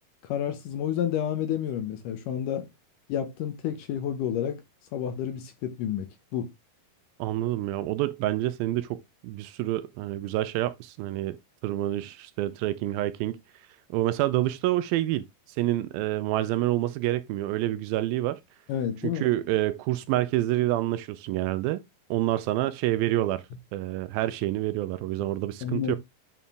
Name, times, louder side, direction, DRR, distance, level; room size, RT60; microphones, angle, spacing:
voice 1, 0.2-2.7 3.1-4.6 4.9-6.5 18.7-19.3 25.6-26.0, left 9 dB, 70° left, 2.1 m, -30 dB
voice 2, 7.2-11.4 11.6-13.4 13.9-15.2 15.6-18.4 19.0-21.8 22.1-23.5 23.7-26.0, right 15 dB, 80° right, 2.3 m, -27 dB
9.1 x 4.4 x 3.4 m
omnidirectional pair, 4.4 m